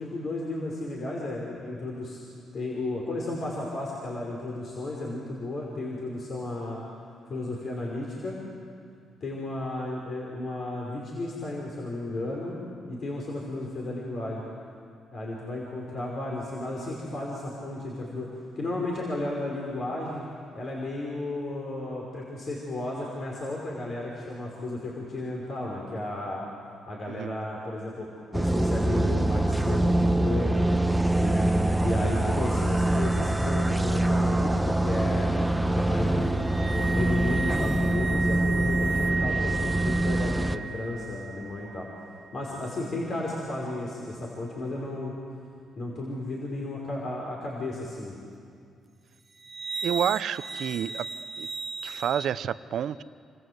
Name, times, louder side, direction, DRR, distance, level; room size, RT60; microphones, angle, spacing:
voice 1, 0.0-2.2 2.5-6.8 7.3-8.4 9.2-12.6 12.9-14.4 15.1-18.3 18.6-20.2 20.6-26.4 26.9-28.1 28.3-30.5 31.2-31.5 31.8-35.3 35.8-41.9 42.3-45.1 45.8-48.2, left 2 dB, 50° left, -2 dB, 5.3 m, -33 dB
voice 2, 27.1-27.4 49.8-51.1 51.4-51.5 51.8-53.0, right 9 dB, 70° right, 14 dB, 0.8 m, -29 dB
sound 1, 28.3-40.6, right 1 dB, 5° right, 1.1 m, -24 dB
sound 2, 36.4-42.6 49.4-52.3, right 4 dB, 35° right, 0.9 m, -34 dB
29.0 x 25.5 x 8.1 m, 2.3 s
cardioid pair, 90°, 0 cm